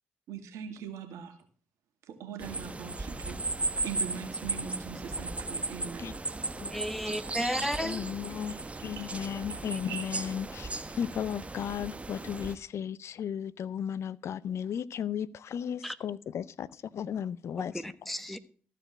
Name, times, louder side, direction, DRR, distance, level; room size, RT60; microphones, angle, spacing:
voice 1, 0.3-1.4 2.1-6.1 8.4-9.5 9.9-10.1, right 7 dB, 75° right, 2.0 m, -42 dB
sound 1, 2.4-12.6, right 3 dB, 25° right, 0.9 m, -36 dB
voice 2, 6.7-8.1 15.8-16.0 17.6-18.4, equal, 5° left, 1.1 m, -34 dB
voice 3, 7.8-8.6 8.8-10.7 11.0-16.7 16.9-17.7, left 8 dB, 60° left, 0.5 m, -35 dB
14.0 x 5.0 x 7.5 m
hypercardioid pair, 50°, 5 cm